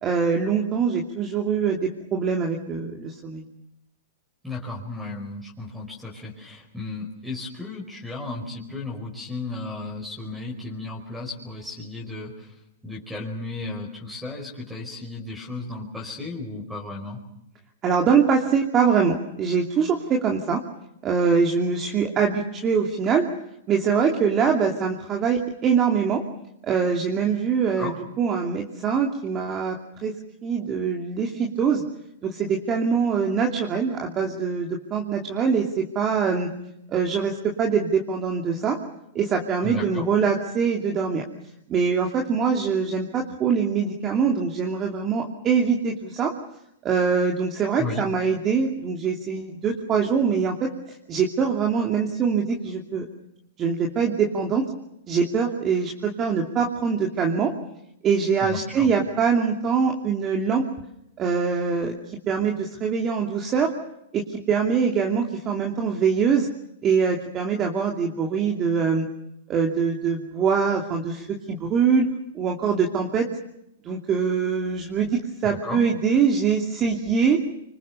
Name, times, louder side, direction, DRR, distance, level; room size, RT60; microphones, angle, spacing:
voice 1, 0.0-3.4 17.8-20.6 21.0-23.3 23.7-26.2 26.6-30.1 30.4-31.8 32.2-36.5 36.9-38.8 39.1-41.2 41.7-46.3 46.8-50.7 51.1-53.1 53.6-54.7 55.1-57.5 58.0-60.7 61.2-61.9 62.3-63.7 64.1-66.5 66.8-69.1 69.5-72.1 72.3-73.3 73.8-77.4, right 6 dB, 25° right, 1 dB, 2.8 m, -23 dB
voice 2, 4.4-12.5 12.8-17.2 27.8-27.9 39.6-40.1 47.8-48.0 58.4-58.9 75.4-75.9, left 3 dB, ahead, 0 dB, 4.9 m, -34 dB
26.0 x 24.5 x 6.9 m, 0.80 s
hypercardioid pair, 130°, 0 cm